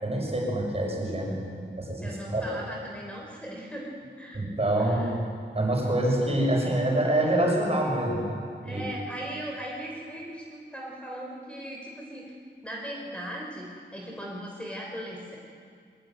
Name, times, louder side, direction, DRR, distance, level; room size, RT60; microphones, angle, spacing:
voice 1, 0.0-1.4 1.8-2.5 4.3-5.2 5.5-8.9, right 1 dB, 35° right, -1 dB, 6.4 m, -26 dB
voice 2, 2.0-4.4 4.8-5.2 8.6-12.4 12.6-13.7 13.9-15.4, equal, 5° left, -2 dB, 3.6 m, -38 dB
22.5 x 20.5 x 9.2 m, 2.2 s
wide cardioid pair, 110°, 19 cm